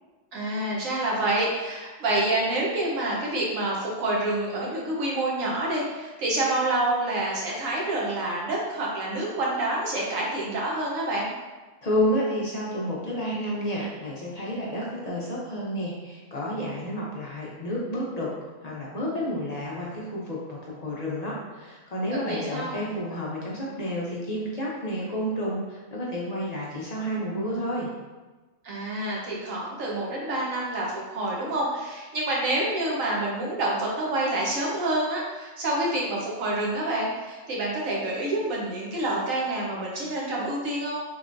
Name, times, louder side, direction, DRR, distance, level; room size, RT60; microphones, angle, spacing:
voice 1, 0.3-11.3 22.3-22.8 28.6-41.0, right 1 dB, 80° right, -4 dB, 1.3 m, -27 dB
voice 2, 11.8-27.9, equal, 45° left, -5 dB, 0.5 m, -30 dB
3.6 x 3.1 x 2.5 m, 1.2 s
omnidirectional pair, 1.4 m